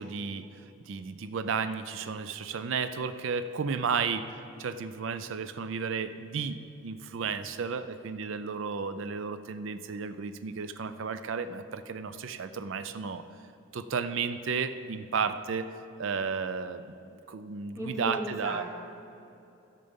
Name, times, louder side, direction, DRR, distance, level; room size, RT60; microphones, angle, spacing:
voice 1, 0.0-13.2 13.7-15.7 16.0-18.6, right 5 dB, 60° right, 11 dB, 0.4 m, -33 dB
voice 2, 17.7-18.6, equal, 15° right, -1 dB, 1.2 m, -35 dB
12.0 x 6.7 x 5.3 m, 2.8 s
head